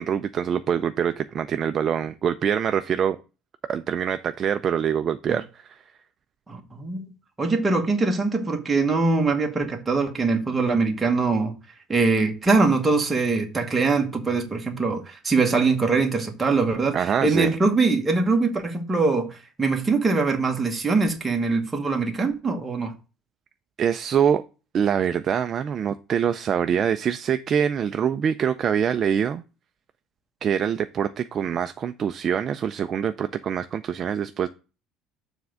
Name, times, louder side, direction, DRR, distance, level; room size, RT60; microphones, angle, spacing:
voice 1, 0.0-3.2 3.7-5.8 16.9-17.5 23.8-24.4 24.7-29.4 30.4-34.5, right 8 dB, 30° right, 0.3 m, -24 dB
voice 2, 6.5-7.1 7.4-11.5 11.9-17.0 17.2-22.9, right 3 dB, 10° right, 1.1 m, -22 dB
7.2 x 3.5 x 6.3 m
cardioid pair, 175°, 0 cm